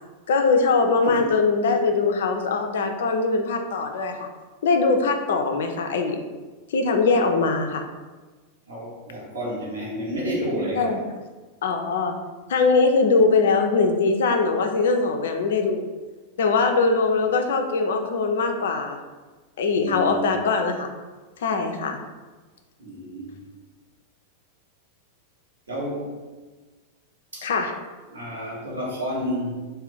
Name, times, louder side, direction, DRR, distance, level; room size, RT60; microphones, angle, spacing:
voice 1, 0.3-4.3 4.6-6.2 6.7-7.8 10.8-11.0 11.6-12.1 12.5-15.9 16.4-19.0 19.6-20.9 21.4-22.0 27.4-27.7, left 4 dB, 60° left, 4 dB, 0.3 m, -21 dB
voice 2, 1.0-1.4 8.7-11.0 19.7-20.4 22.8-23.4 25.7-26.2 27.3-27.5 28.1-29.6, equal, 70° right, -4 dB, 0.8 m, -30 dB
2.4 x 2.2 x 3.4 m, 1.3 s
figure-of-eight pair, 90°, 0 cm